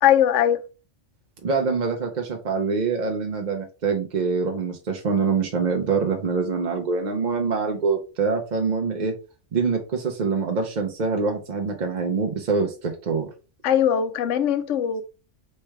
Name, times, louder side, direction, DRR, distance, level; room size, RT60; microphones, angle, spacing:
voice 1, 0.0-0.6 13.6-15.0, left 10 dB, 85° left, 1.0 m, -20 dB
voice 2, 1.4-9.1 9.5-13.3, right 5 dB, 45° right, 0.7 m, -25 dB
3.3 x 3.3 x 4.6 m
omnidirectional pair, 1.2 m